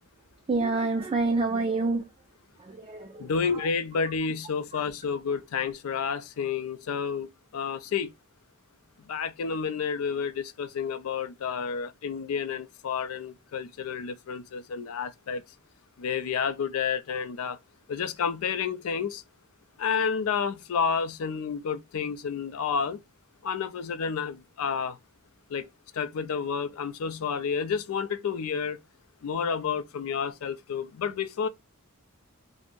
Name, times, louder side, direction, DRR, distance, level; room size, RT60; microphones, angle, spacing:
voice 1, 0.5-2.1 2.6-3.7 4.7-4.8, right 3 dB, 25° right, 0.3 m, -28 dB
voice 2, 3.2-8.1 9.1-15.4 16.0-17.6 17.9-19.2 19.8-23.0 23.4-25.0 25.5-28.8 29.2-31.5, left 6 dB, 70° left, 0.4 m, -30 dB
2.5 x 2.0 x 3.5 m
head